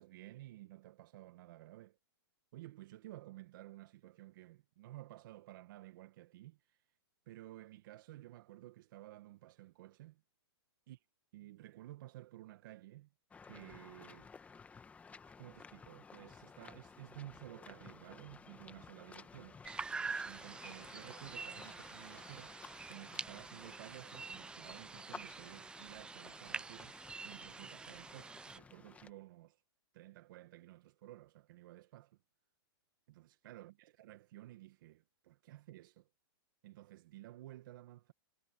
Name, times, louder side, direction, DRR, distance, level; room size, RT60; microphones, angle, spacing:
voice 1, 0.0-2.0 2.5-6.8 7.2-10.2 10.9-11.0 11.3-13.1 13.4-14.3 15.2-19.6 20.2-22.6 22.9-27.0 27.2-29.6 29.9-32.2 33.1-36.1 36.6-38.1, right 16 dB, 55° right, 1.6 m, -54 dB
sound 1, 13.3-29.1, left 5 dB, 10° left, 1.3 m, -56 dB
sound 2, 19.6-28.6, right 4 dB, 5° right, 0.4 m, -46 dB
hypercardioid pair, 140°, 13 cm